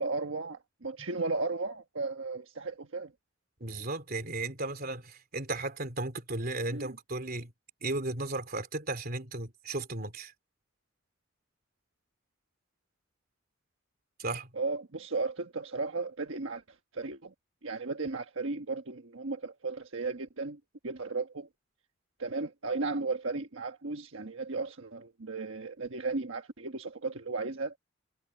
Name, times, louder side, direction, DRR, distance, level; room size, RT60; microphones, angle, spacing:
voice 1, 0.0-3.1 6.7-7.0 14.5-16.6 16.9-17.3 17.6-21.5 22.2-27.8, right 3 dB, 75° right, 1.3 m, -35 dB
voice 2, 3.6-7.5 7.8-10.3 14.2-14.5, right 2 dB, 50° right, 3.6 m, -35 dB
head